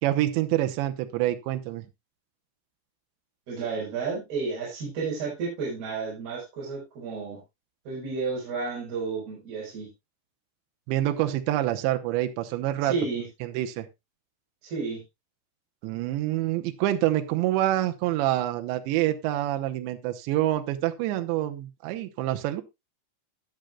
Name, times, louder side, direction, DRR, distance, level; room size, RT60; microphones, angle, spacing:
voice 1, 0.0-1.8 10.9-12.9 13.4-13.9 15.8-22.6, right 14 dB, 85° right, 6 dB, 3.1 m, -26 dB
voice 2, 3.5-7.4 7.9-9.9 12.8-13.3 14.6-15.0, right 4 dB, 60° right, -5 dB, 6.5 m, -31 dB
19.5 x 6.6 x 2.3 m, 0.21 s
omnidirectional pair, 5.1 m